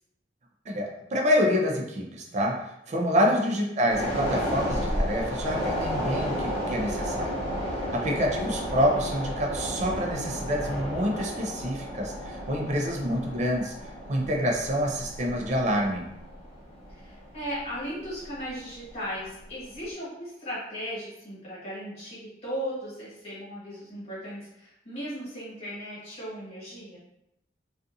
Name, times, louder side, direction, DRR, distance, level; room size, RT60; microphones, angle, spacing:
voice 1, 0.7-7.4 7.8-13.7 14.1-16.1, equal, 40° right, 1 dB, 0.4 m, -27 dB
voice 2, 3.2-3.7 7.9-8.1 16.9-27.0, equal, 35° left, -8 dB, 1.4 m, -37 dB
sound 1, 3.9-18.5 18.8-19.0, equal, 10° left, 1.1 m, -32 dB
2.4 x 2.4 x 2.6 m, 0.81 s
head